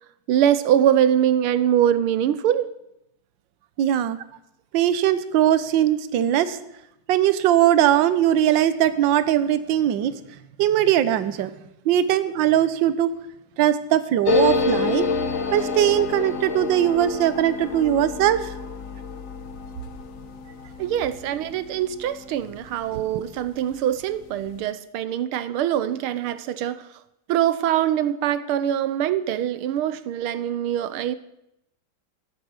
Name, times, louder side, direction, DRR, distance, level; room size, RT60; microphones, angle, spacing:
voice 1, 0.3-2.7 20.8-26.9 27.3-31.2, right 10 dB, 80° right, 14 dB, 1.6 m, -23 dB
voice 2, 3.8-4.2 4.7-6.6 7.1-10.1 10.6-11.5 11.8-13.1 13.6-15.1 15.5-18.5, right 11 dB, 65° right, 13 dB, 1.5 m, -20 dB
sound 1, 14.2-23.4 23.7-23.8 24.0-24.6, left 4 dB, 50° left, 1.0 m, -28 dB
14.5 x 12.0 x 6.4 m, 0.83 s
omnidirectional pair, 2.4 m